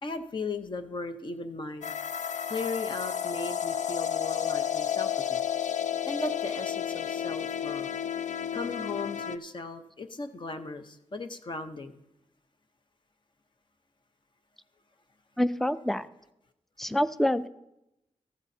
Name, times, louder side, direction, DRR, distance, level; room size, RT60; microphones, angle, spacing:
voice 1, 0.0-1.9 2.5-5.4 6.1-7.9 8.5-12.0, left 3 dB, 40° left, 8 dB, 0.7 m, -37 dB
sound 1, 1.8-9.4, left 9 dB, 85° left, 0.4 m, -31 dB
voice 2, 15.4-16.1 16.8-17.5, left 1 dB, ahead, 13 dB, 0.3 m, -26 dB
14.0 x 12.5 x 2.7 m, 0.89 s
wide cardioid pair, 155°, 12 cm